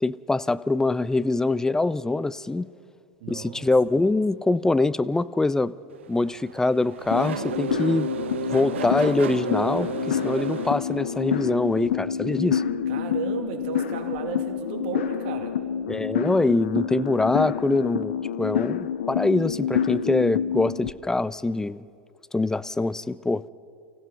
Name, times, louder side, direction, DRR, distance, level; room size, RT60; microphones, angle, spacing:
voice 1, 0.0-2.7 3.3-5.7 6.1-8.1 8.5-12.6 15.9-21.9 22.3-23.4, left 2 dB, 10° left, 18 dB, 0.5 m, -24 dB
voice 2, 3.2-3.7 12.9-15.6, right 8 dB, 65° right, 5 dB, 2.7 m, -34 dB
Race car auto racing / Accelerating revving vroom, 5.9-11.5, right 9 dB, 85° right, 0.5 m, -34 dB
sound 1, 7.1-20.9, left 8 dB, 80° left, 0.8 m, -28 dB
29.5 x 16.0 x 5.6 m, 2.4 s
hypercardioid pair, 90°, 6 cm